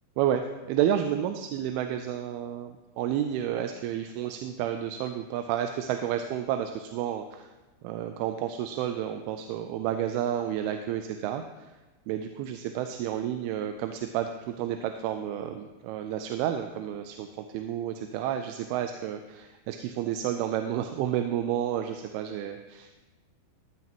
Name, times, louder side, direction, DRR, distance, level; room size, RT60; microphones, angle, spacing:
voice 1, 0.2-7.5 7.8-11.7 12.1-22.9, right 10 dB, 90° right, 6 dB, 2.5 m, -31 dB
14.0 x 9.2 x 3.0 m, 1.2 s
omnidirectional pair, 4.4 m